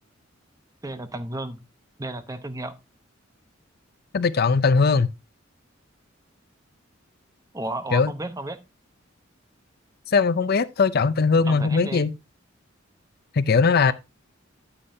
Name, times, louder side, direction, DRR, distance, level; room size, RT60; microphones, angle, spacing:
voice 1, 0.8-1.6 2.0-2.7 7.5-8.6 11.5-12.1, right 2 dB, 15° right, 0.8 m, -33 dB
voice 2, 4.1-5.1 7.9-8.1 10.1-12.1 13.3-13.9, left 4 dB, 50° left, 0.5 m, -20 dB
9.6 x 8.8 x 2.6 m
head